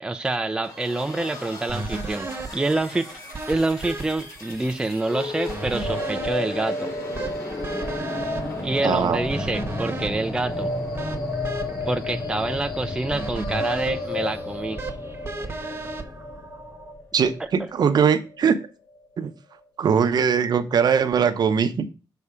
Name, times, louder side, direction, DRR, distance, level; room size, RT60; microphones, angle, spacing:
voice 1, 0.0-3.1 3.5-6.9 8.6-10.7 11.9-14.8, right 2 dB, 10° right, 0.4 m, -27 dB
sound 1, 0.6-17.2, left 1 dB, 45° left, 4.3 m, -36 dB
sound 2, 1.7-16.9, right 2 dB, 30° right, 1.1 m, -36 dB
sound 3, 5.0-19.0, left 2 dB, 70° left, 0.9 m, -33 dB
voice 2, 8.8-9.2 17.1-18.6 19.2-19.3 19.8-21.9, right 7 dB, 60° right, 0.8 m, -21 dB
6.8 x 4.2 x 4.9 m
wide cardioid pair, 120°, 8 cm